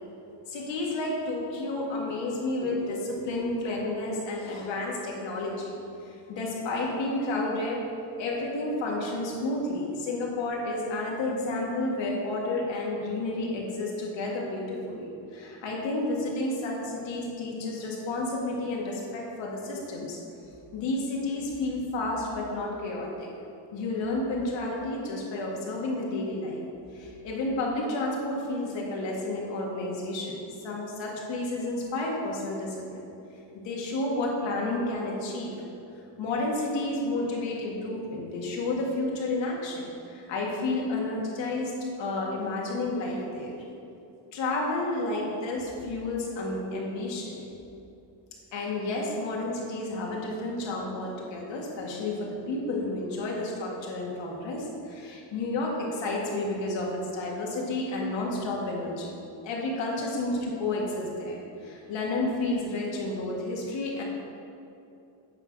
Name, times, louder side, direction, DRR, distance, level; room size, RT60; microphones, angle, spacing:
voice 1, 0.5-5.7 6.1-7.8 8.2-20.2 20.7-23.3 23.7-26.6 26.9-33.1 33.5-35.5 36.2-43.6 44.3-47.5 48.5-59.2 59.4-64.0, left 2 dB, 70° left, -2 dB, 2.0 m, -31 dB
9.0 x 5.7 x 5.9 m, 2.8 s
cardioid pair, 180°, 47 cm